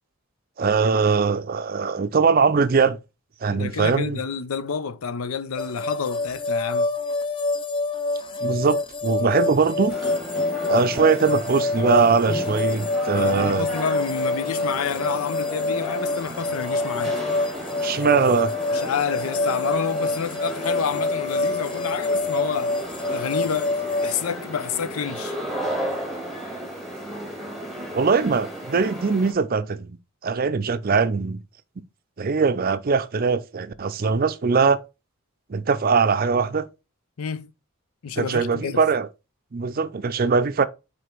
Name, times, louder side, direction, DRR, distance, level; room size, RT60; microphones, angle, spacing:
voice 1, 0.6-3.0 3.4-4.2 8.4-10.0 10.7-13.7 17.8-18.5 27.9-30.0 30.2-31.4 32.2-34.8 35.5-36.7 38.2-39.1 39.5-40.7, right 5 dB, 45° right, 0.5 m, -21 dB
voice 2, 3.5-6.9 13.1-17.2 18.7-22.8 23.1-25.3 37.2-37.5 38.0-38.8, left 6 dB, 85° left, 0.6 m, -29 dB
sound 1, 5.6-24.1, left 3 dB, 25° left, 0.5 m, -26 dB
sound 2, 9.9-29.3, right 1 dB, ahead, 1.5 m, -34 dB
5.0 x 4.2 x 4.4 m
head